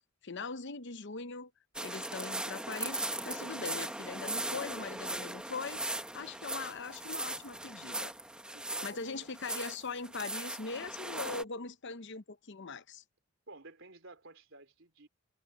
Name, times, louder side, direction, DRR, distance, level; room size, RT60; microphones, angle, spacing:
voice 1, 0.2-1.5 1.8-5.8 6.1-8.1 8.8-13.0, left 4 dB, 55° left, 0.8 m, -41 dB
sound 1, 1.8-11.4, right 1 dB, 5° right, 1.0 m, -39 dB
voice 2, 8.5-9.3 13.5-15.1, right 2 dB, 60° right, 4.1 m, -53 dB
head